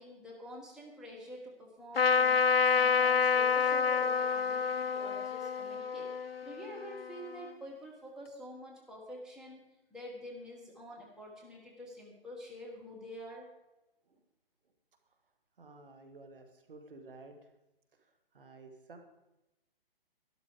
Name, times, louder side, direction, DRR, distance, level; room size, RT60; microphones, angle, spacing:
voice 1, 0.0-2.4 2.7-6.1 6.4-9.6 9.9-13.4, equal, ahead, -3 dB, 1.5 m, -47 dB
Trumpet, 2.0-7.5, left 6 dB, 75° left, 0.7 m, -28 dB
sound 1, 2.0-5.8, left 3 dB, 60° left, 6.0 m, -61 dB
voice 2, 15.6-17.4 18.0-19.0, right 3 dB, 65° right, 6 dB, 2.4 m, -53 dB
12.5 x 12.0 x 4.9 m, 0.94 s
figure-of-eight pair, 140°, 30 cm